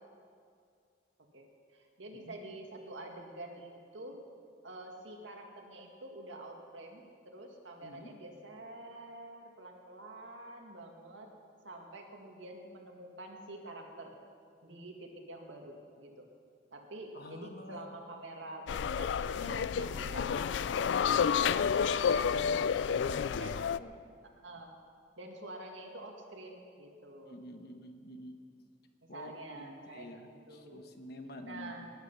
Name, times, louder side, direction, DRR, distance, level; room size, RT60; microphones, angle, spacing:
voice 1, 1.7-4.2 4.6-11.3 11.6-14.1 14.6-16.3 16.7-23.0 23.4-23.7 24.2-24.7 25.2-27.5 29.1-30.8 31.4-31.9, right 1 dB, 80° right, 1 dB, 2.1 m, -47 dB
voice 2, 7.8-8.1 17.1-18.2 19.5-20.2 22.3-24.1 27.2-28.3 29.1-31.9, left 1 dB, 55° left, 5 dB, 1.2 m, -48 dB
sound 1, 18.7-23.8, left 7 dB, 70° left, 0.3 m, -30 dB
19.5 x 10.5 x 5.7 m, 2.3 s
head